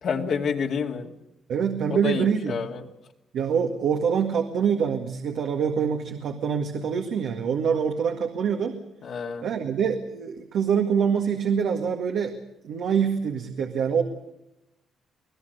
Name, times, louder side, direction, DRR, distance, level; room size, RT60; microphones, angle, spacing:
voice 1, 0.0-1.1 1.9-2.8 9.0-9.5, left 6 dB, 65° left, 1 dB, 2.4 m, -28 dB
voice 2, 1.5-2.6 3.3-8.8 9.4-12.4 12.6-14.0, right 7 dB, 75° right, 3 dB, 2.0 m, -25 dB
26.5 x 17.5 x 6.7 m, 0.90 s
cardioid pair, 90°, 0 cm